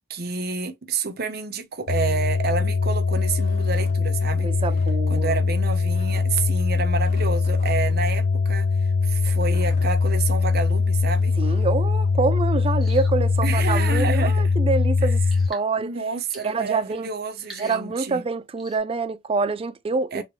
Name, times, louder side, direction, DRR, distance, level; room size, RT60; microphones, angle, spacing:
voice 1, 0.1-4.5 5.1-11.3 13.4-14.4 15.0-15.1 15.8-18.2 20.1-20.2, right 4 dB, 55° right, 0.9 m, -29 dB
sound 1, 1.9-15.5, left 4 dB, 80° left, 0.4 m, -22 dB
sound 2, 3.1-4.0 4.6-5.0 5.9-6.3 7.0-8.0 9.2-9.9 11.1-11.8, left 1 dB, 35° left, 1.3 m, -47 dB
voice 2, 4.4-5.4 11.4-16.0 16.4-17.1 17.6-20.2, right 4 dB, 30° right, 0.4 m, -26 dB
sound 3, 12.8-13.2 13.8-14.2 15.3-15.7 16.3-16.6 17.4-17.9 18.6-18.8, right 1 dB, ahead, 1.3 m, -44 dB
3.7 x 3.0 x 3.1 m
head